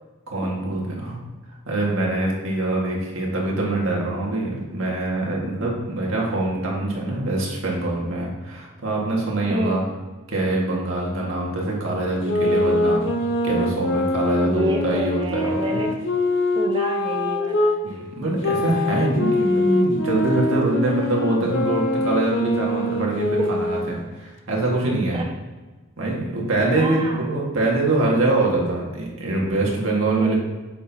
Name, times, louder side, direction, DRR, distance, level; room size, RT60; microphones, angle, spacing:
voice 1, 0.3-1.2 1.7-9.8 10.3-15.8 17.8-25.2 26.0-30.3, right 2 dB, 75° right, -2 dB, 1.8 m, -24 dB
voice 2, 9.5-9.8 14.4-16.0 16.6-17.8 25.1-25.3 26.8-27.3 30.2-30.3, right 1 dB, 25° right, 2 dB, 0.4 m, -29 dB
sound 1, 12.2-17.8 18.4-24.0, left 2 dB, 55° left, 0.7 m, -23 dB
7.4 x 6.7 x 2.9 m, 1.3 s
head